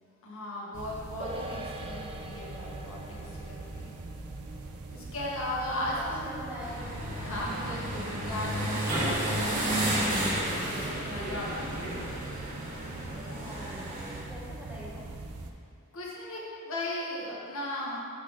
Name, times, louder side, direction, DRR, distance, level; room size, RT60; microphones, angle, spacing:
voice 1, 0.2-4.0 4.9-6.3 7.2-12.1 15.9-18.0, left 1 dB, 70° left, -4 dB, 1.3 m, -37 dB
sound 1, 0.7-15.5, right 3 dB, 80° right, 0.6 m, -42 dB
sound 2, 1.2-7.9 8.1-8.2, right 1 dB, 25° right, 0.4 m, -45 dB
voice 2, 5.7-7.2 13.3-15.0, equal, 10° right, -8 dB, 1.7 m, -44 dB
sound 3, 6.6-14.2, right 1 dB, 40° right, 1.4 m, -32 dB
11.0 x 4.1 x 3.7 m, 2.5 s
head